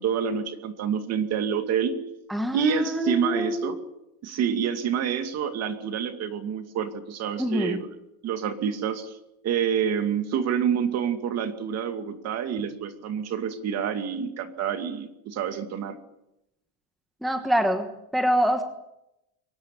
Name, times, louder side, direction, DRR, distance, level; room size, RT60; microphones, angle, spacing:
voice 1, 0.0-1.9 2.5-3.8 4.2-7.9 8.2-9.1 9.4-16.0, right 7 dB, 35° right, 8 dB, 2.3 m, -27 dB
voice 2, 2.3-3.8 7.4-7.8 17.2-18.6, equal, ahead, 6 dB, 1.2 m, -25 dB
23.5 x 18.0 x 9.9 m, 0.87 s
cardioid pair, 180°, 43 cm